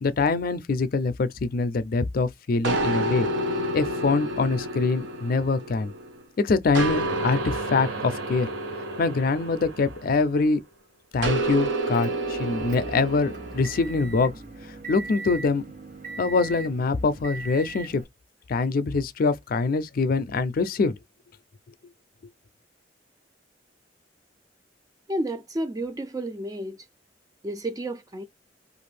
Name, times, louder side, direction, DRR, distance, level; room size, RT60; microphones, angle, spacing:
voice 1, 0.0-3.3 3.7-5.9 6.4-8.5 9.0-10.6 11.1-14.3 14.9-15.6 16.2-18.0 18.5-21.0, left 4 dB, 50° left, 0.4 m, -24 dB
sound 1, 2.6-6.2 6.7-10.5 11.2-13.9, right 1 dB, 90° right, 0.7 m, -29 dB
Motor vehicle (road) / Engine, 11.9-18.0, right 3 dB, 45° right, 0.8 m, -39 dB
voice 2, 25.1-26.8 27.4-28.2, right 1 dB, 20° right, 0.4 m, -31 dB
2.5 x 2.4 x 3.2 m
head